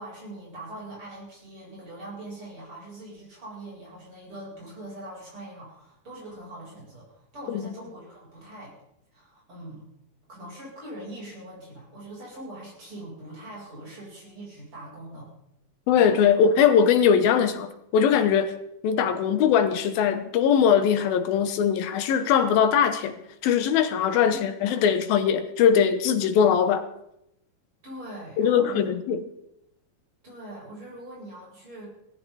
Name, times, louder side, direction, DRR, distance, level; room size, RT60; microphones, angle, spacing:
voice 1, 0.0-8.7 9.1-9.9 10.3-15.3 24.3-24.5 27.8-28.9 30.2-31.9, right 1 dB, 35° right, 9.0 m, -42 dB
voice 2, 15.9-18.5 18.8-26.9 28.4-29.2, left 7 dB, 80° left, 2.9 m, -21 dB
18.0 x 15.0 x 4.2 m
omnidirectional pair, 4.2 m